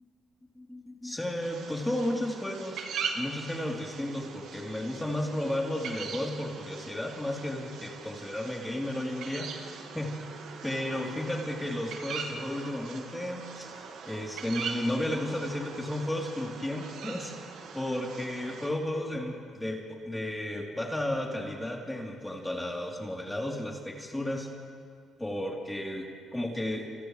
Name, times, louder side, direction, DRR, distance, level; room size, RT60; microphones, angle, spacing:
voice 1, 0.6-2.8 3.1-10.2 10.6-13.7 14.0-17.3 17.7-24.5 25.2-26.9, left 1 dB, 10° left, -2 dB, 3.7 m, -33 dB
sound 1, 1.4-18.7, right 5 dB, 80° right, 2.0 m, -41 dB
29.0 x 28.5 x 3.4 m, 2.2 s
cardioid pair, 90°, 0 cm